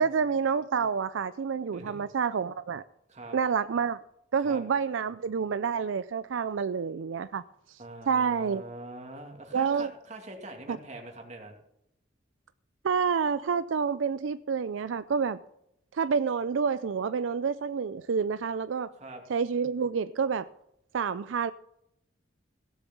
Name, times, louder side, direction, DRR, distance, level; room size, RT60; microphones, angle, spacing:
voice 1, 0.0-2.8 3.3-4.0 4.3-7.4 7.7-7.8 8.1-8.6 9.5-9.9 10.7-10.8 12.8-15.4 15.9-18.9 19.3-20.5 20.9-21.5, right 6 dB, 80° right, 0.4 m, -28 dB
voice 2, 1.7-2.0 3.1-3.4 4.4-4.6 7.8-11.5 19.0-19.2, right 2 dB, 35° right, 2.5 m, -43 dB
16.5 x 7.2 x 7.0 m
head